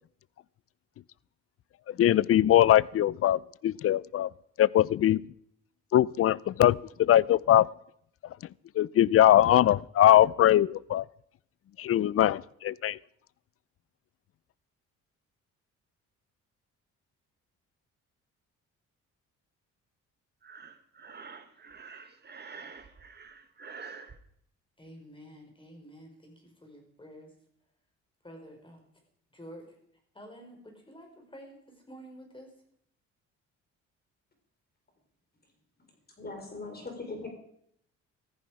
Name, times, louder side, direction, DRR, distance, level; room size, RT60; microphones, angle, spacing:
voice 1, 2.0-4.3 4.6-5.2 5.9-7.7 8.8-11.0 11.8-13.0, left 12 dB, 50° left, 0.5 m, -22 dB
Breathing, 20.4-24.2, right 5 dB, 35° right, 1.6 m, -47 dB
voice 2, 24.8-27.3 28.2-28.8 29.3-29.7 30.1-32.5, equal, 15° left, 4.8 m, -49 dB
voice 3, 36.2-37.3, left 3 dB, 30° left, 4.2 m, -39 dB
14.5 x 14.5 x 4.9 m
cardioid pair, 90°, 30 cm